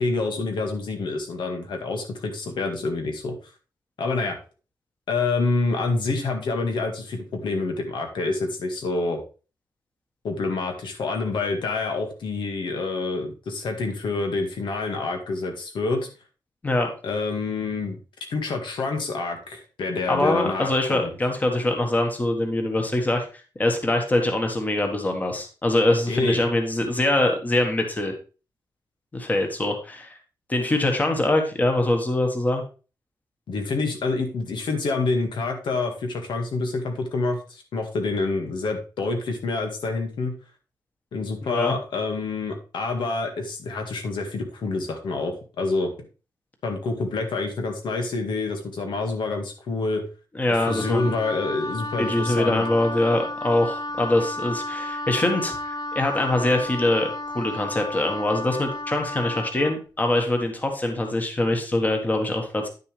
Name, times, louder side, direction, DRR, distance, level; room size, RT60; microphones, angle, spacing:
voice 1, 0.0-3.4 4.0-4.4 5.1-9.2 10.2-16.1 17.0-18.0 18.3-21.1 26.1-26.4 33.5-40.3 41.1-45.9 46.6-50.0 50.7-52.6, left 3 dB, 90° left, 4 dB, 1.9 m, -27 dB
voice 2, 20.1-23.3 23.6-28.1 29.1-30.1 30.5-32.6 41.4-41.7 50.3-51.1 52.0-62.7, left 1 dB, 20° left, 4 dB, 1.5 m, -23 dB
Wind instrument woodwind instrument, 50.6-59.8, left 1 dB, 55° left, 0.7 m, -33 dB
9.8 x 6.7 x 3.3 m, 0.34 s
wide cardioid pair, 175°, 8 cm